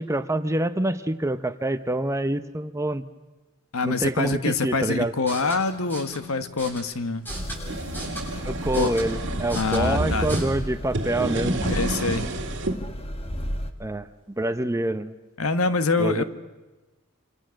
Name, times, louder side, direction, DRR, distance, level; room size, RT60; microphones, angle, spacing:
voice 1, 0.0-3.0 3.8-5.1 8.4-11.6 13.8-14.1 14.4-15.1 16.0-16.2, right 1 dB, 15° right, 10 dB, 0.8 m, -26 dB
voice 2, 3.7-7.3 8.8-8.9 9.5-10.3 11.7-12.3 15.4-16.2, left 3 dB, 85° left, 10 dB, 1.3 m, -25 dB
sound 1, 5.1-10.4, right 1 dB, 10° left, 7.5 m, -39 dB
sound 2, 7.3-13.7, equal, 25° left, 1.4 m, -34 dB
sound 3, 7.4-10.4 10.9-12.8, right 2 dB, 60° right, 2.1 m, -29 dB
27.0 x 27.0 x 6.4 m, 1.2 s
head